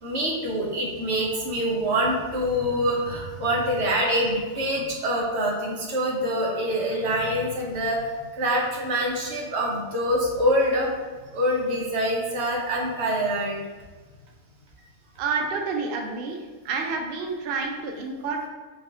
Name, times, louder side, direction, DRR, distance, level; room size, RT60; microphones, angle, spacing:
voice 1, 0.0-11.0 11.3-13.6, equal, 55° right, -2 dB, 1.1 m, -25 dB
voice 2, 15.2-16.4 16.6-18.5, right 4 dB, 75° right, 2 dB, 0.5 m, -29 dB
4.7 x 2.5 x 3.6 m, 1.3 s
omnidirectional pair, 1.5 m